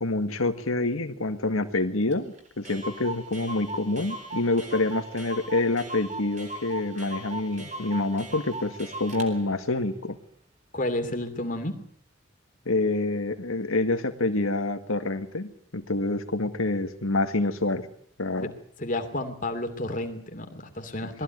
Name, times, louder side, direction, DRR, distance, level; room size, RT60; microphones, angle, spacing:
voice 1, 0.0-10.2 12.7-17.9 18.2-18.5 21.0-21.2, left 2 dB, 90° left, 8 dB, 1.9 m, -27 dB
Clock, 2.1-2.2 2.4-2.5 2.6-9.3, right 2 dB, 35° right, 3.8 m, -38 dB
voice 2, 10.7-11.8 18.8-21.2, left 1 dB, 40° left, 6 dB, 2.9 m, -31 dB
21.5 x 15.5 x 9.3 m, 0.64 s
head